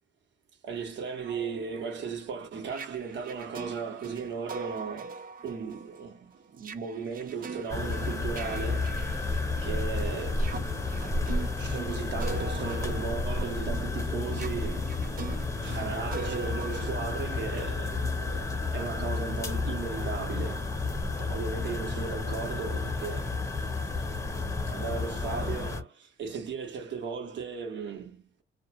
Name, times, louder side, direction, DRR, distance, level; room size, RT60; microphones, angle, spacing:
voice 1, 0.6-15.1 15.6-20.8 21.2-23.4 23.7-28.4, right 5 dB, 65° right, 1.1 m, -37 dB
sound 1, 1.0-9.8 10.3-18.1, right 5 dB, 45° right, 0.5 m, -43 dB
sound 2, 7.7-25.8, left 3 dB, 15° left, 0.8 m, -31 dB
2.4 x 2.3 x 3.0 m
cardioid pair, 90°, 20 cm